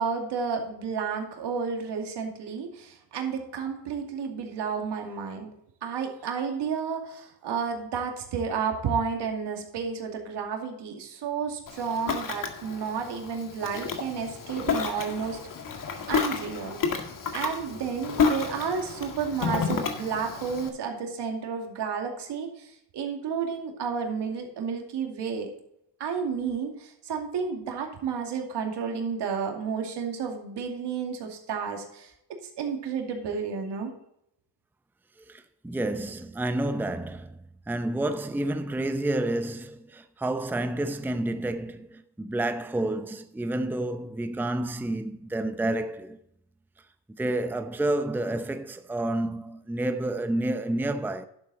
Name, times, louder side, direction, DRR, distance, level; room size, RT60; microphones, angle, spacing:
voice 1, 0.0-5.5 5.8-15.4 16.1-16.8 17.3-25.5 26.0-32.1 32.4-33.9, right 6 dB, 75° right, 2.5 m, -31 dB
Ocean, 11.7-20.7, left 5 dB, 50° left, 1.9 m, -31 dB
voice 2, 35.3-37.4 37.7-46.2 47.1-51.3, right 1 dB, 5° right, 0.6 m, -29 dB
11.5 x 7.4 x 4.1 m
cardioid pair, 90°, 42 cm